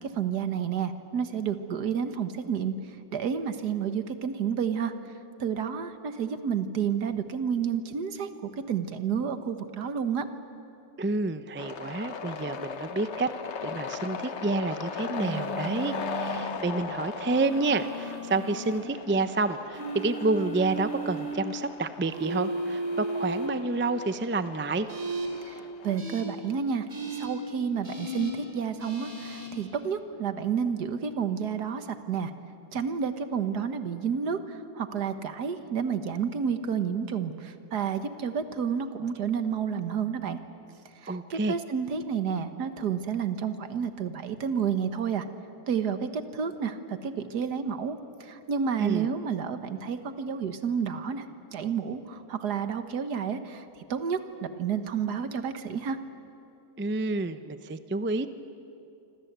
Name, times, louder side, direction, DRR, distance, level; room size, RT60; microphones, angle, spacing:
voice 1, 0.0-4.9 5.4-8.3 8.7-10.3 25.5-32.3 32.7-40.4 41.0-45.3 45.7-56.0, right 7 dB, 75° right, 10 dB, 1.9 m, -30 dB
voice 2, 11.0-13.3 13.6-24.9 41.1-41.5 48.8-49.1 56.8-58.3, right 3 dB, 15° right, 11 dB, 0.3 m, -29 dB
sound 1, 11.6-26.0, left 6 dB, 50° left, 1.2 m, -39 dB
sound 2, 15.1-16.4 17.3-18.8 19.7-21.3 22.1-23.5 24.9-25.3 26.0-26.2 26.9-27.3 27.8-28.3 28.8-29.5, right 2 dB, 45° right, 4.4 m, -35 dB
26.5 x 26.0 x 8.1 m, 2.7 s
omnidirectional pair, 1.7 m